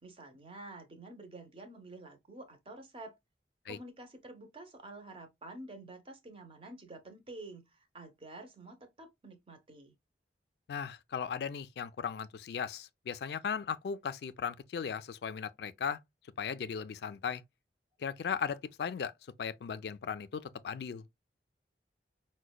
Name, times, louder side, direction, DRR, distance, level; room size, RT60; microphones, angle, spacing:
voice 1, 0.0-3.2 3.7-9.9, right 2 dB, 30° right, 0.7 m, -49 dB
voice 2, 10.7-16.0 16.4-17.4 18.0-19.1 19.4-21.0, left 7 dB, 65° left, 0.3 m, -37 dB
4.9 x 2.1 x 2.2 m
head